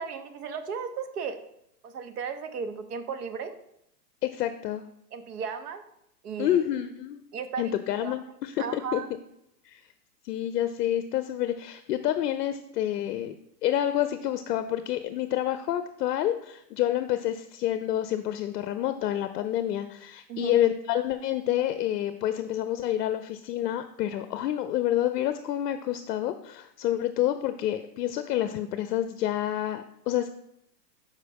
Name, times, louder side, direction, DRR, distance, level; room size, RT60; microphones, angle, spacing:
voice 1, 0.0-1.4 1.8-3.5 5.1-5.8 6.2-6.7 7.3-8.1 8.6-9.1 20.3-20.6, right 6 dB, 70° right, 8 dB, 0.9 m, -35 dB
voice 2, 4.2-4.8 6.4-7.2 7.6-9.0 9.6-9.8 10.2-13.4 13.6-30.3, left 12 dB, 70° left, 10 dB, 0.5 m, -28 dB
6.5 x 4.9 x 3.4 m, 0.77 s
supercardioid pair, 180°, 49 cm